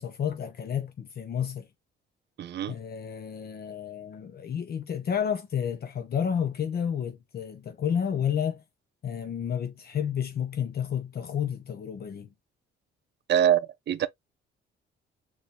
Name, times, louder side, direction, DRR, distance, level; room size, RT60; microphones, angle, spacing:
voice 1, 0.0-1.7 2.7-8.6 9.0-12.3, left 8 dB, 50° left, 0.8 m, -31 dB
voice 2, 2.4-2.8 13.3-14.1, right 10 dB, 60° right, 0.6 m, -24 dB
4.1 x 3.1 x 3.2 m
cardioid pair, 90°, 20 cm